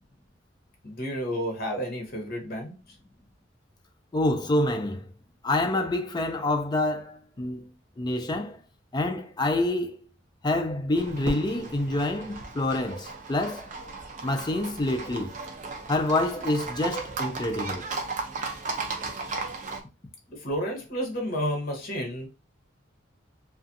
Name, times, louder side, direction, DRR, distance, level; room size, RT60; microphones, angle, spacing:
voice 1, 0.8-2.7 20.3-22.3, equal, 50° left, 1.0 m, -31 dB
voice 2, 4.1-5.1 5.4-7.7 8.0-8.6 8.9-10.0 10.4-15.4 15.9-17.9, left 2 dB, 20° left, 0.4 m, -27 dB
Livestock farm animals working animals, 11.0-19.8, right 4 dB, 40° right, 0.5 m, -36 dB
Fireworks, 11.2-13.4, equal, 80° right, 1.0 m, -39 dB
2.5 x 2.4 x 2.6 m
head